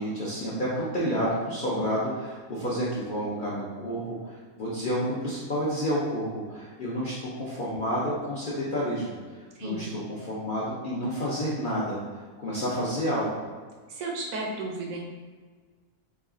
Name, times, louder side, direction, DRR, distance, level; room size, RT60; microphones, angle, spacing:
voice 1, 0.0-9.1 9.6-12.0 12.4-13.3, equal, 55° left, -7 dB, 0.5 m, -30 dB
voice 2, 9.5-9.9 13.9-15.0, right 2 dB, 70° right, -1 dB, 1.0 m, -33 dB
3.1 x 2.3 x 3.7 m, 1.5 s
omnidirectional pair, 1.5 m